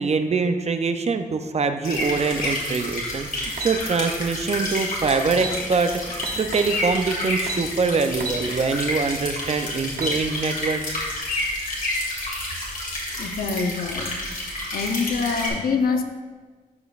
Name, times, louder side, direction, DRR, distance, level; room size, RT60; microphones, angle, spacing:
voice 1, 0.0-11.0, right 4 dB, 45° right, 8 dB, 0.5 m, -24 dB
sound 1, 1.8-15.5, left 1 dB, 70° left, 2.2 m, -29 dB
sound 2, 3.6-3.8 5.0-5.1 5.3-5.6 6.2-6.7 7.5-7.7 8.2-8.4 8.9-9.0 9.8-10.2, right 3 dB, 75° right, 0.8 m, -30 dB
voice 2, 13.1-14.2 14.7-16.0, left 5 dB, 85° left, 5 dB, 0.6 m, -25 dB
12.0 x 5.1 x 2.4 m, 1.5 s
cardioid pair, 65°, 15 cm